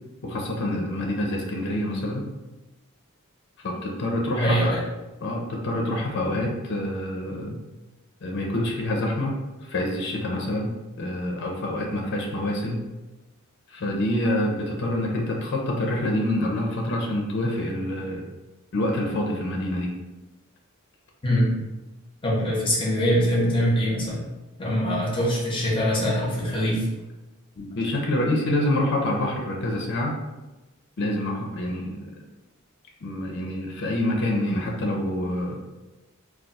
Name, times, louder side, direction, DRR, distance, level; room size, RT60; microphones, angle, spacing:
voice 1, 0.2-2.2 3.6-4.8 5.2-7.6 8.2-10.7 11.0-12.8 13.7-18.3 18.7-19.9 27.6-30.2 31.0-32.1 33.0-35.6, left 1 dB, 55° left, 0 dB, 0.5 m, -26 dB
voice 2, 4.4-4.8 21.2-21.7 22.2-24.2 24.6-26.9, equal, 25° left, -5 dB, 0.7 m, -23 dB
2.3 x 2.3 x 3.9 m, 1.1 s
head